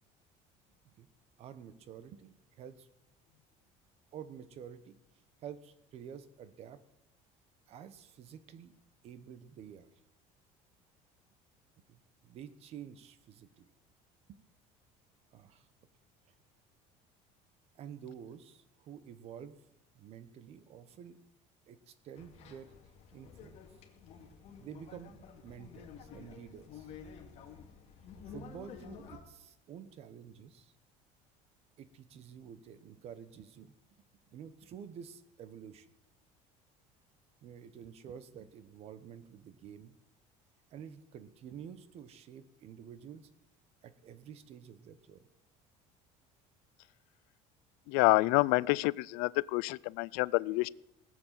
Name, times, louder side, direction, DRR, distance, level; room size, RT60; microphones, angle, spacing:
voice 1, 1.4-2.9 4.1-5.0 5.4-6.8 7.7-8.7 9.0-9.9 11.9-13.7 14.3-14.4 15.3-15.7 17.7-19.6 19.9-21.2 21.7-22.7 23.1-23.6 24.5-26.9 28.3-30.7 31.8-33.7 34.3-35.9 37.4-40.0 40.7-43.3 43.8-45.2, right 8 dB, 45° right, 14 dB, 1.1 m, -49 dB
sound 1, 22.2-29.2, left 6 dB, 50° left, 2.3 m, -51 dB
voice 2, 47.9-50.7, left 23 dB, 90° left, 22 dB, 0.4 m, -28 dB
19.0 x 7.7 x 7.5 m, 0.87 s
cardioid pair, 165°, 15 cm